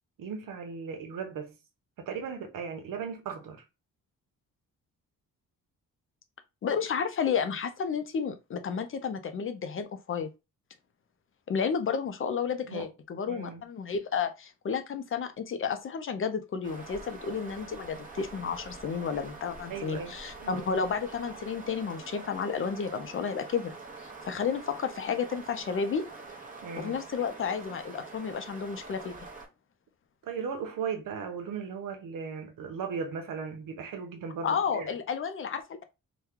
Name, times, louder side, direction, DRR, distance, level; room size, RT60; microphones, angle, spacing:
voice 1, 0.2-1.6 2.0-3.6 12.7-12.9 13.3-13.6 19.7-20.2 20.4-20.6 26.6-27.0 30.2-34.9, right 6 dB, 80° right, 0.9 m, -37 dB
voice 2, 6.6-10.3 11.5-23.8 24.3-26.0 26.8-29.1 34.4-35.8, left 6 dB, 40° left, 0.5 m, -32 dB
sound 1, 16.6-29.4, right 3 dB, 25° right, 0.8 m, -45 dB
2.9 x 2.2 x 3.5 m
wide cardioid pair, 135°, 32 cm